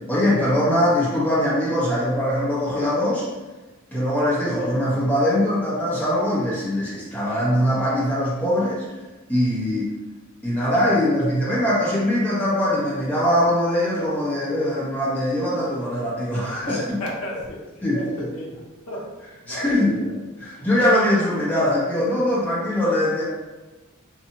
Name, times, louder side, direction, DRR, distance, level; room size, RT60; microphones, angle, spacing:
voice 1, 0.1-3.2 3.9-8.8 9.3-9.9 10.4-17.0 17.8-18.2 19.5-20.0 20.4-23.2, left 1 dB, 5° left, -9 dB, 0.9 m, -22 dB
voice 2, 16.4-20.1 20.6-20.8, left 1 dB, 80° left, -2 dB, 0.6 m, -34 dB
2.7 x 2.3 x 2.8 m, 1.2 s
head